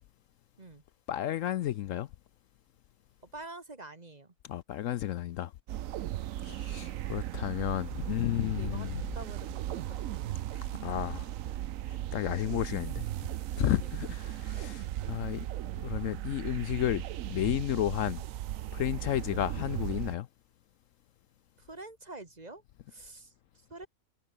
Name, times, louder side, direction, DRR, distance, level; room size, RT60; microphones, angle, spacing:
voice 1, 1.1-2.1 4.4-5.5 6.4-9.1 10.8-11.3 11.9-13.1 13.6-15.5 15.8-18.2 18.7-20.3, left 12 dB, 70° left, 0.9 m, -32 dB
voice 2, 3.3-4.3 8.5-8.9 9.1-10.8 13.7-13.9 21.6-22.6 22.9-23.3 23.7-23.9, right 2 dB, 30° right, 1.8 m, -47 dB
sound 1, 5.7-20.2, right 13 dB, 70° right, 1.0 m, -37 dB
omnidirectional pair, 1.5 m